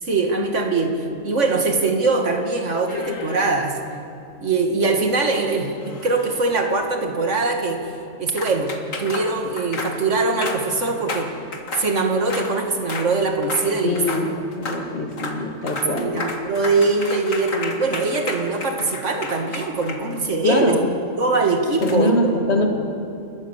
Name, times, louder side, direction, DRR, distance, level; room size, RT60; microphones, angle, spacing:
voice 1, 0.0-3.8 4.4-7.8 8.2-8.7 9.0-11.3 11.8-14.2 15.9-20.7 21.2-22.6, right 3 dB, 65° right, 3 dB, 2.3 m, -22 dB
sound 1, 2.9-3.7 5.8-6.7 8.4-12.5 12.9-13.1 13.4-13.7 14.0-14.3 14.5-14.8 15.1-15.4 15.7-20.4 21.8-22.0, left 3 dB, 85° left, 2.1 m, -32 dB
voice 2, 13.8-16.3 20.4-20.9 21.8-22.7, left 2 dB, 55° left, 3 dB, 2.4 m, -23 dB
28.5 x 13.5 x 7.2 m, 2.6 s
omnidirectional pair, 1.3 m